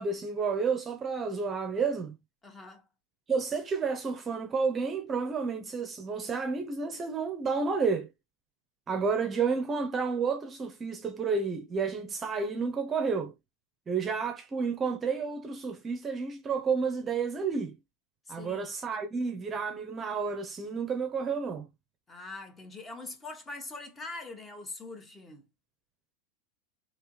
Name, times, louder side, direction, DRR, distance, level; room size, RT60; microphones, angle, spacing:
voice 1, 0.0-2.1 3.3-8.1 8.9-13.3 13.9-17.8 18.3-21.7, right 5 dB, 25° right, 0.7 m, -31 dB
voice 2, 2.4-2.8 18.3-18.7 22.1-25.4, left 3 dB, 20° left, 1.2 m, -43 dB
3.4 x 3.0 x 3.0 m
hypercardioid pair, 110°, 0 cm